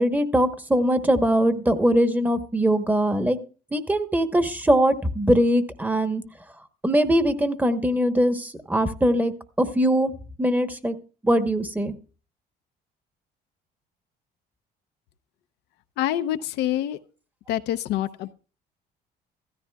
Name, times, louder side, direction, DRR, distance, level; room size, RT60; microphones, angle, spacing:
voice 1, 0.0-3.4 3.7-6.2 6.8-10.1 10.4-10.9 11.2-11.9, equal, 10° right, 1.0 m, -21 dB
voice 2, 16.0-17.0 17.5-18.3, left 12 dB, 85° left, 0.6 m, -26 dB
15.5 x 13.5 x 2.3 m
cardioid pair, 110°, 17 cm